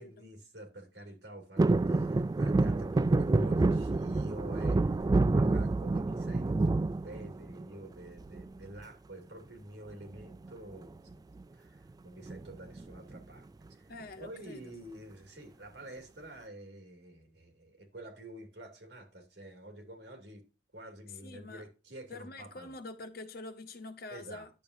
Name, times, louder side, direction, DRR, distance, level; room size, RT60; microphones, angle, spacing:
voice 1, 0.0-13.9 14.2-20.4 20.7-22.7 24.1-24.5, right 1 dB, 70° right, 2.6 m, -49 dB
sound 1, 1.6-7.8 8.2-8.8 10.1-10.5 10.7-10.8 11.1-11.4 12.3-13.2 13.7-13.8, right 2 dB, 20° right, 0.3 m, -28 dB
voice 2, 13.9-14.7 21.2-21.7 22.1-24.5, left 2 dB, 60° left, 1.3 m, -46 dB
11.0 x 7.1 x 2.6 m
head